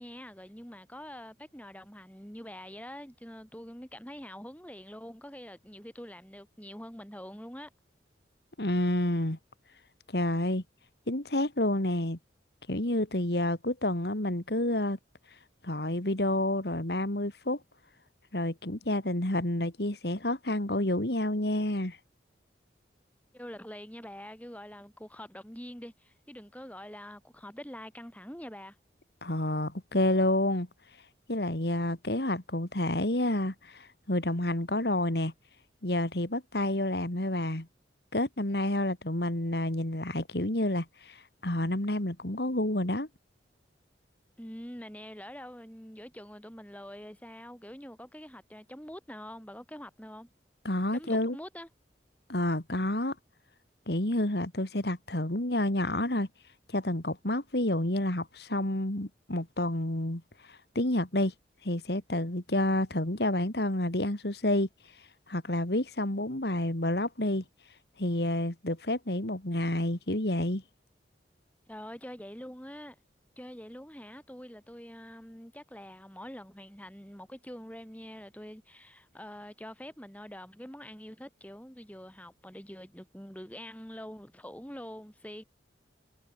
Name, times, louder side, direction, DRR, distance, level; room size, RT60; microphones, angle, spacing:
voice 1, 0.0-7.7 23.3-28.8 44.4-50.3 50.9-51.7 71.7-73.0 73.4-85.4, equal, 10° left, 6.2 m, -45 dB
voice 2, 8.6-9.4 10.1-10.6 11.1-12.2 12.7-15.0 15.6-17.6 18.3-22.0 29.2-30.7 31.3-35.3 35.8-37.7 38.1-43.1 50.6-51.4 52.3-53.1 53.9-56.3 56.7-60.2 60.5-61.3 61.6-64.7 65.3-67.4 68.0-70.6, left 1 dB, 60° left, 2.6 m, -29 dB
head